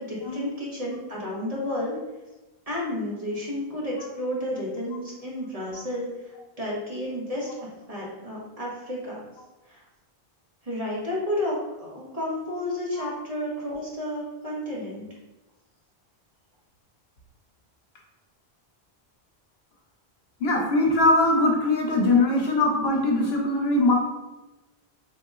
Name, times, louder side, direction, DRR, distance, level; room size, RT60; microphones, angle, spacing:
voice 1, 0.0-1.9 2.7-6.1 6.6-7.5 7.9-9.2 9.7-9.8 10.6-15.0, left 1 dB, 35° right, -6 dB, 1.1 m, -31 dB
voice 2, 20.4-23.9, left 2 dB, 70° left, 0 dB, 0.9 m, -21 dB
4.0 x 2.8 x 2.4 m, 1.1 s
omnidirectional pair, 1.1 m